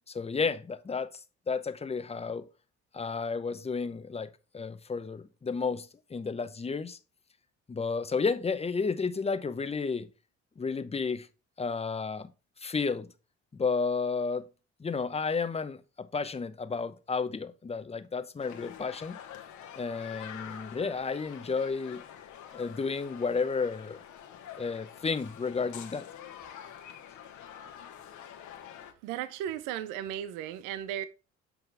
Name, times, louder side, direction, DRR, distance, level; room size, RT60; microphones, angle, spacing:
voice 1, 0.1-2.5 2.9-7.0 7.7-10.1 10.6-11.3 11.6-12.3 12.6-13.1 13.5-14.5 14.8-19.2 19.8-22.0 22.5-24.0 24.6-26.1, left 4 dB, 20° left, 0.8 m, -32 dB
sound 1, 18.4-28.9, left 9 dB, 60° left, 1.3 m, -47 dB
voice 2, 29.0-31.0, right 10 dB, 75° right, 0.6 m, -35 dB
8.1 x 5.7 x 3.4 m
hypercardioid pair, 65°, 32 cm